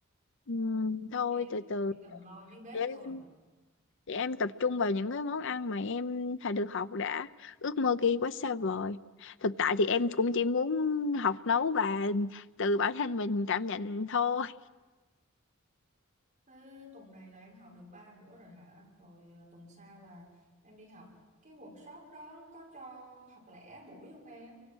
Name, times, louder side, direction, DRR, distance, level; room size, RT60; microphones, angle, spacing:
voice 1, 0.5-1.9 2.7-3.2 4.1-14.5, left 4 dB, 65° left, 13 dB, 0.7 m, -30 dB
voice 2, 1.3-3.2 16.5-24.6, equal, 40° right, -2 dB, 5.7 m, -52 dB
28.5 x 24.0 x 6.3 m, 1.3 s
head